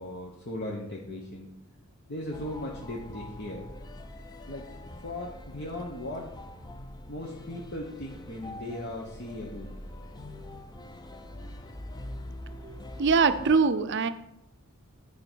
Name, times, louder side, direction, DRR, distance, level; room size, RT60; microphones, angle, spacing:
voice 1, 0.0-1.5 2.1-3.7 4.5-4.6 5.0-6.3 7.1-9.7, left 1 dB, 50° left, -2 dB, 1.2 m, -37 dB
sound 1, 2.3-13.6, left 1 dB, 20° left, 0.6 m, -44 dB
voice 2, 12.6-14.1, right 5 dB, 50° right, 11 dB, 0.5 m, -23 dB
9.7 x 5.1 x 6.2 m, 0.86 s
head